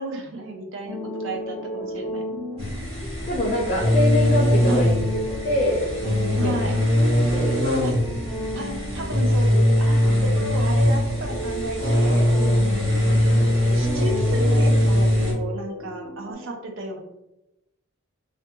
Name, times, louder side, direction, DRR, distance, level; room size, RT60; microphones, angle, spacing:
voice 1, 0.0-2.2 4.7-4.9 6.4-6.8 7.8-7.9 8.6-12.3 13.0-17.0, right 2 dB, 60° right, 3 dB, 0.5 m, -33 dB
sound 1, 0.8-16.3, equal, 35° right, 0.8 m, -34 dB
sound 2, 2.6-15.3, left 1 dB, 90° right, 1.2 m, -21 dB
voice 2, 3.3-5.2 5.4-5.8 6.3-6.8 7.2-7.6, left 1 dB, 40° left, -3 dB, 0.4 m, -25 dB
2.5 x 2.2 x 2.6 m, 0.91 s
head